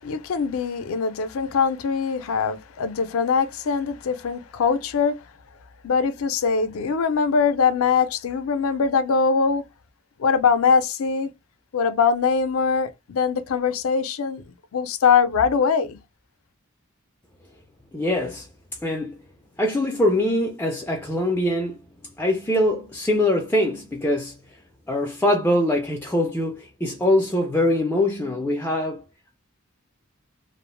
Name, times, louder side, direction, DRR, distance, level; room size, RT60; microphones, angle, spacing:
voice 1, 0.0-5.2 5.8-9.6 10.2-11.3 11.7-14.4 14.7-16.0, left 5 dB, 75° left, 0.4 m, -22 dB
voice 2, 17.9-18.5 18.8-19.2 19.6-21.8 22.2-24.4 24.9-29.0, left 1 dB, 10° left, 0.3 m, -23 dB
2.4 x 2.0 x 3.0 m
head